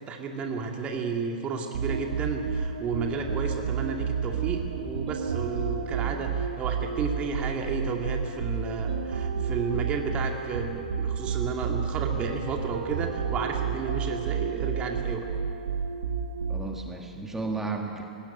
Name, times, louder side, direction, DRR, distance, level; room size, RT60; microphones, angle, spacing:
voice 1, 0.0-15.3, right 4 dB, 25° right, 2 dB, 2.3 m, -32 dB
sound 1, 1.7-16.9, right 7 dB, 70° right, 1.8 m, -31 dB
voice 2, 6.0-6.4 16.5-18.0, right 3 dB, 10° right, 2 dB, 2.0 m, -34 dB
19.5 x 17.0 x 9.2 m, 2.7 s
hypercardioid pair, 115°, 4 cm